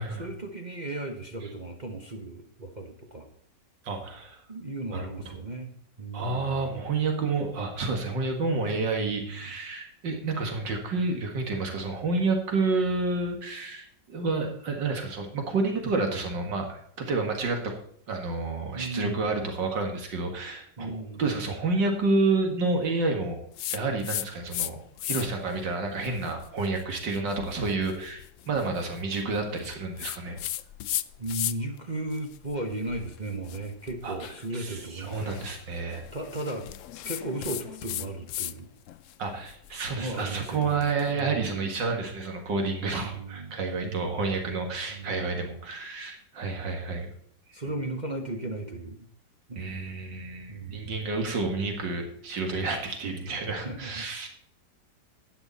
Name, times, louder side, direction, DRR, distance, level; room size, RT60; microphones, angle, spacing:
voice 1, 0.1-3.3 4.5-5.7 6.0-6.5 8.7-9.4 18.7-19.3 20.8-21.2 31.2-35.4 36.1-36.7 37.0-38.7 40.0-40.8 41.1-41.7 43.0-44.2 44.9-45.4 47.5-49.1 49.5-49.8 50.5-51.0 53.5-54.1, right 2 dB, 30° right, 2 dB, 1.1 m, -36 dB
voice 2, 3.8-4.4 4.9-5.4 6.1-17.8 18.1-23.4 23.7-30.4 34.0-34.3 34.5-36.0 39.2-47.1 49.6-54.3, right 3 dB, 85° right, 4 dB, 2.5 m, -29 dB
sound 1, 23.6-24.7 25.0-25.5 26.0-31.8 32.1-38.6 38.9-41.1, left 13 dB, 85° left, 0.6 m, -37 dB
11.5 x 9.5 x 4.1 m, 0.66 s
omnidirectional pair, 1.9 m